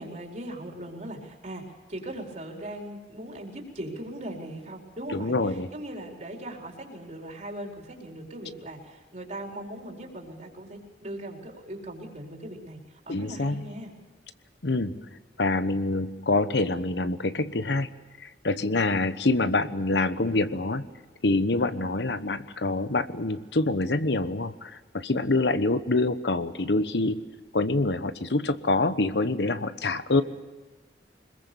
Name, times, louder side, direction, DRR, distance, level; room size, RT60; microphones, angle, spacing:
voice 1, 0.0-13.9, right 1 dB, 45° right, 1 dB, 4.4 m, -39 dB
voice 2, 5.1-5.7 13.1-13.7 14.6-15.1 15.4-17.9 18.2-20.9 21.2-27.2 27.5-30.2, left 2 dB, 75° left, 12 dB, 1.1 m, -26 dB
25.5 x 21.5 x 7.0 m, 1.3 s
head